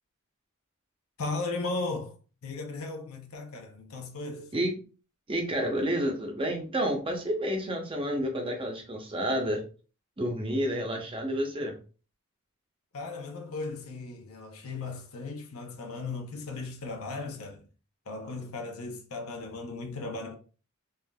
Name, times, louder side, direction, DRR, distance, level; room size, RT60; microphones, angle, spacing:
voice 1, 1.2-4.5 12.9-17.7 18.1-20.3, left 3 dB, 80° left, 0.7 m, -36 dB
voice 2, 5.3-9.6 10.2-11.8, equal, 25° right, 0.6 m, -30 dB
3.4 x 2.4 x 2.2 m
head